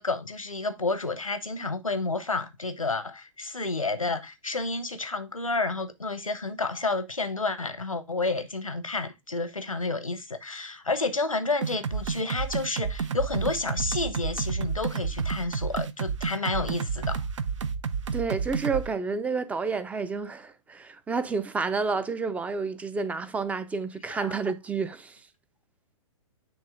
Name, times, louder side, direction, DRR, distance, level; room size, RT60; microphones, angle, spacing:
voice 1, 0.0-17.2 24.2-24.3, left 3 dB, 90° left, 0.9 m, -30 dB
sound 1, 11.6-18.9, right 6 dB, 65° right, 0.7 m, -30 dB
voice 2, 18.1-25.2, right 4 dB, 10° right, 0.5 m, -30 dB
9.5 x 3.2 x 3.5 m
figure-of-eight pair, 115°, 17 cm